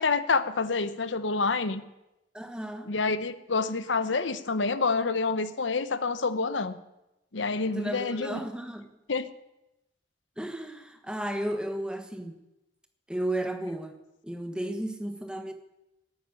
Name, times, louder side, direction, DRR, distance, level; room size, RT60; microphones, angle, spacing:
voice 1, 0.0-1.8 2.9-6.8 7.3-8.4 9.1-9.3, left 4 dB, 90° left, 13 dB, 0.9 m, -27 dB
voice 2, 2.3-2.9 7.7-8.9 10.4-12.4 13.1-14.0 14.2-15.5, right 1 dB, 5° right, 7 dB, 1.2 m, -33 dB
12.0 x 9.4 x 8.9 m, 0.93 s
head